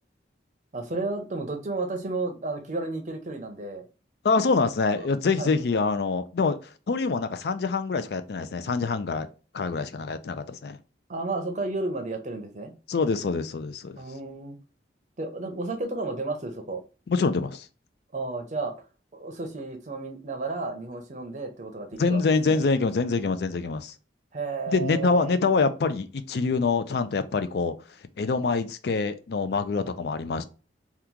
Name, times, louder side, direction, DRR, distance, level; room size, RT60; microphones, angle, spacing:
voice 1, 0.7-3.8 5.0-5.1 5.4-5.5 11.1-12.7 14.0-14.6 15.2-16.8 18.1-18.7 19.1-22.6 24.3-25.3 29.8-29.9, right 3 dB, 40° right, 0.6 m, -32 dB
voice 2, 4.2-6.6 6.9-9.3 9.5-10.8 12.9-14.0 17.1-17.7 22.0-23.9 24.7-27.7 28.2-30.4, left 4 dB, 60° left, 0.4 m, -25 dB
2.9 x 2.4 x 3.5 m
head